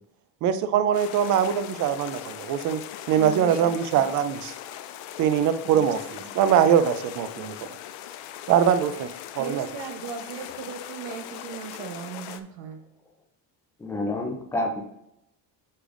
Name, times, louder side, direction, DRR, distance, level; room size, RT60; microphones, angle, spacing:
voice 1, 0.4-2.8 3.1-4.5 5.2-6.0 6.4-7.7 8.5-9.1 9.4-9.7, right 9 dB, 45° right, 0.4 m, -22 dB
sound 1, 0.9-12.4, left 11 dB, 60° left, 0.5 m, -40 dB
voice 2, 3.2-4.1 5.7-5.9 6.2-6.4 8.9-12.8, right 7 dB, 70° right, 1.1 m, -38 dB
voice 3, 13.8-14.8, left 1 dB, 5° left, 0.5 m, -28 dB
9.9 x 5.0 x 2.5 m
cardioid pair, 175°, 42 cm